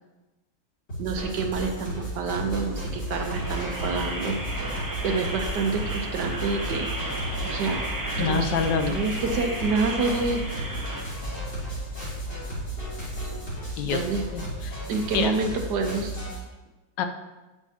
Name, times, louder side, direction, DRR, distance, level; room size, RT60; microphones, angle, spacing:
sound 1, 0.9-16.4, right 1 dB, 30° left, 2.6 m, -34 dB
voice 1, 1.0-4.4 4.7-4.8 5.0-6.9 7.4-7.8 8.2-8.5 8.9-10.4 13.2-13.3 13.8-14.2 14.9-16.1, right 4 dB, 70° right, 5 dB, 1.3 m, -28 dB
sound 2, 2.3-13.4, equal, 60° left, 1.2 m, -39 dB
sound 3, 3.0-11.0, right 1 dB, 35° right, 0.3 m, -34 dB
voice 2, 8.2-9.0 13.8-14.0 14.3-14.7 15.1-15.3 17.0-17.1, left 6 dB, 80° left, 7 dB, 1.3 m, -26 dB
8.3 x 8.2 x 2.8 m, 1.1 s
omnidirectional pair, 2.0 m